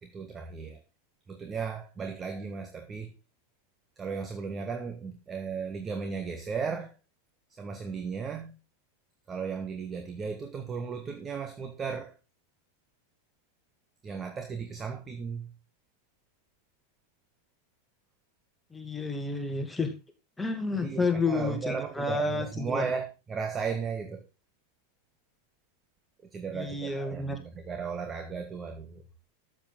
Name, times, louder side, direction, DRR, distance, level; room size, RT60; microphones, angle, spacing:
voice 1, 0.0-0.8 1.3-3.1 4.0-6.9 7.6-8.5 9.3-12.1 14.0-15.5 20.8-24.3 26.3-29.0, right 5 dB, 20° right, 1.5 m, -35 dB
voice 2, 18.7-19.9 20.4-22.9 26.5-27.4, left 3 dB, 5° left, 2.4 m, -30 dB
13.5 x 7.9 x 3.9 m
figure-of-eight pair, 90°, 0 cm